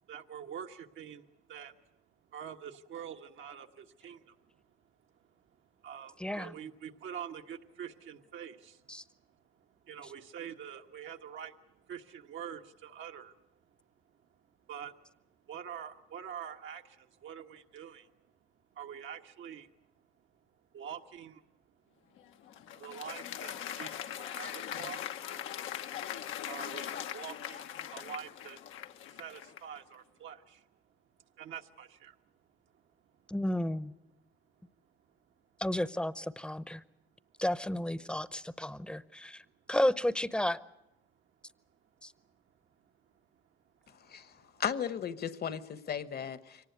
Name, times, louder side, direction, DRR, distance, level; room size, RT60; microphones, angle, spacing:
voice 1, 0.1-1.8 2.3-4.4 5.8-8.8 9.8-11.6 11.9-13.3 14.7-14.9 15.5-18.1 18.7-19.7 20.7-21.4 22.7-25.0 26.4-28.6 29.1-30.6 31.4-32.2, right 8 dB, 75° right, 4 dB, 1.4 m, -45 dB
voice 2, 6.2-6.5 8.9-9.0 33.3-33.9 35.6-36.8 37.4-39.4 39.7-40.6 42.0-42.1, left 1 dB, 5° left, 17 dB, 0.8 m, -32 dB
Applause, 22.2-29.8, left 10 dB, 85° left, 1.0 m, -41 dB
voice 3, 44.6-46.7, left 8 dB, 55° left, 15 dB, 1.1 m, -36 dB
24.0 x 18.5 x 8.2 m, 0.89 s
cardioid pair, 90°, 20 cm